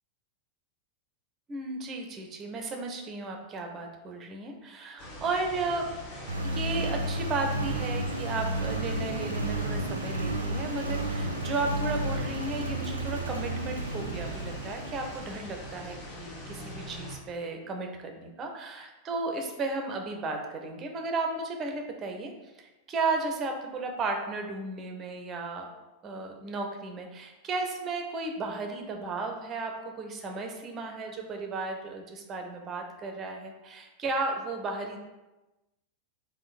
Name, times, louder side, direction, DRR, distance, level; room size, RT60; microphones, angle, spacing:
voice 1, 1.5-5.9 6.4-22.3 22.6-25.7 26.0-35.0, right 3 dB, 25° right, 3 dB, 0.6 m, -34 dB
sound 1, 5.0-17.1, equal, 40° left, 1.2 m, -40 dB
Engine, 6.3-15.7, right 1 dB, 80° right, 0.4 m, -32 dB
3.7 x 2.6 x 4.1 m, 1.1 s
figure-of-eight pair, 90°, 0 cm